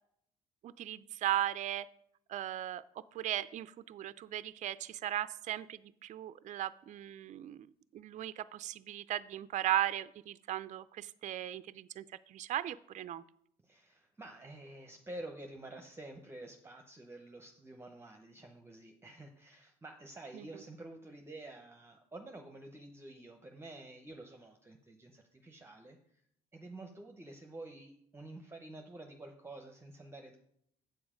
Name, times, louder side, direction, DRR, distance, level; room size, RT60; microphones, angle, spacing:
voice 1, 0.6-1.9 2.3-2.8 3.1-7.7 7.9-13.2 20.3-20.5, right 12 dB, 45° right, 15 dB, 0.4 m, -37 dB
voice 2, 13.6-26.2 26.5-30.4, right 2 dB, 15° right, 4 dB, 0.8 m, -49 dB
7.8 x 7.1 x 5.0 m, 0.71 s
cardioid pair, 110°, 17 cm